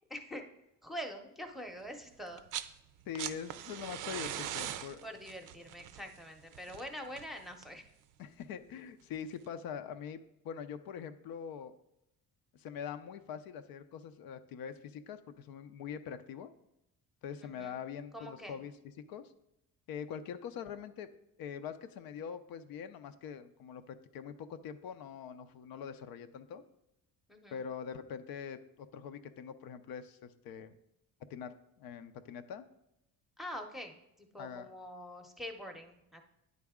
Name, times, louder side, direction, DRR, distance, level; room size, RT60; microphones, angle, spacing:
voice 1, 0.1-0.4 0.8-2.4 5.0-7.8 17.4-17.8 18.1-18.6 27.3-27.6 33.4-36.2, equal, ahead, 3 dB, 0.7 m, -45 dB
sound 1, 2.3-2.7 3.0-7.9 9.1-9.2, right 11 dB, 65° right, 0.5 m, -41 dB
voice 2, 3.1-5.1 8.2-11.7 12.5-16.5 17.2-18.7 19.1-19.2 19.9-21.1 21.4-26.6 27.5-30.8 31.3-32.6 34.4-34.7, left 7 dB, 80° left, 9 dB, 0.6 m, -43 dB
9.6 x 4.0 x 3.6 m, 0.83 s
cardioid pair, 120°, 35 cm